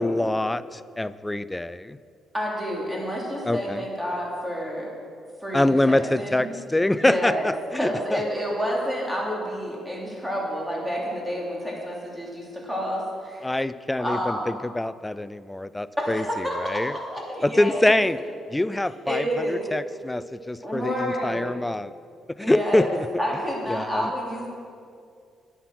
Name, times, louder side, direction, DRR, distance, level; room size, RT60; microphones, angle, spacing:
voice 1, 0.0-2.0 3.5-3.8 5.5-8.2 13.4-16.2 16.6-16.9 17.4-18.2 18.5-21.9 22.4-23.1 23.7-24.1, left 1 dB, 10° left, 16 dB, 0.4 m, -25 dB
voice 2, 2.3-4.9 5.4-6.5 6.9-13.6 14.0-14.5 16.0-18.0 19.1-19.6 20.6-21.5 22.4-24.5, equal, 5° right, -3 dB, 3.5 m, -29 dB
11.0 x 10.0 x 5.9 m, 2.3 s
cardioid pair, 90°, 0 cm